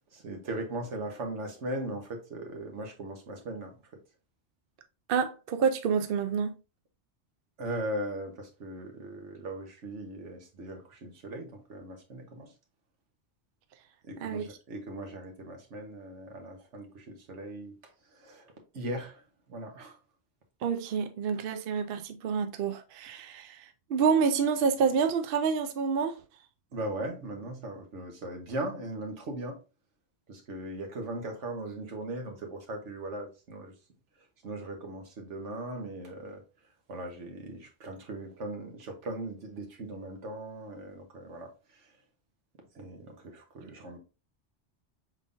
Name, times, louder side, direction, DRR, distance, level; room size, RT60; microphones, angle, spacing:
voice 1, 0.1-3.7 7.6-12.5 14.1-17.7 18.1-18.5 18.7-19.2 19.5-20.0 26.7-29.6 30.3-33.7 34.4-36.4 36.9-41.5 42.7-44.0, right 1 dB, 85° right, 1.4 m, -38 dB
voice 2, 5.1-6.6 14.2-14.4 20.6-26.2 43.6-43.7, right 6 dB, 60° right, 0.7 m, -28 dB
5.2 x 3.7 x 2.5 m
omnidirectional pair, 1.2 m